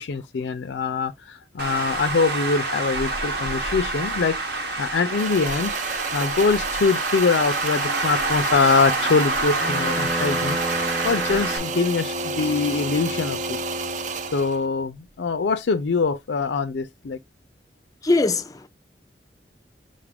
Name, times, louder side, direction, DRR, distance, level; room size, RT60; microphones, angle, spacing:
voice 1, 0.0-5.8 6.1-10.6 11.0-13.6 14.3-17.2, left 4 dB, 90° left, 0.5 m, -23 dB
Traffic noise roadway noise, 1.6-11.6, right 2 dB, 70° right, 1.0 m, -27 dB
sound 1, 5.1-14.7, right 7 dB, 45° right, 0.4 m, -32 dB
Bowed string instrument, 9.6-14.5, left 1 dB, 25° right, 0.9 m, -31 dB
voice 2, 18.0-18.7, left 3 dB, 20° left, 0.4 m, -21 dB
5.3 x 2.4 x 3.4 m
head